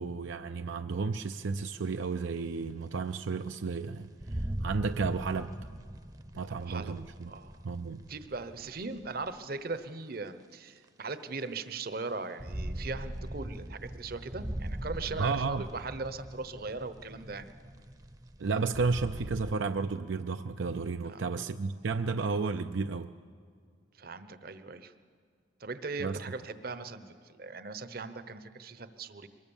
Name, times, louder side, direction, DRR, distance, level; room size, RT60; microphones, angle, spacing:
voice 1, 0.0-5.5 6.3-7.3 7.6-8.0 15.2-15.6 18.4-23.1 26.0-26.2, right 4 dB, 75° right, 8 dB, 0.5 m, -32 dB
sound 1, 1.9-2.0 2.7-2.8 3.4-3.5 4.2-9.4 10.3-10.4 12.1-19.5, right 1 dB, 20° right, 0.7 m, -41 dB
voice 2, 6.6-6.9 7.3-7.6 8.1-17.5 21.0-21.3 24.0-24.9 25.6-29.3, right 3 dB, 50° right, 12 dB, 0.9 m, -39 dB
23.5 x 21.0 x 7.1 m, 2.1 s
head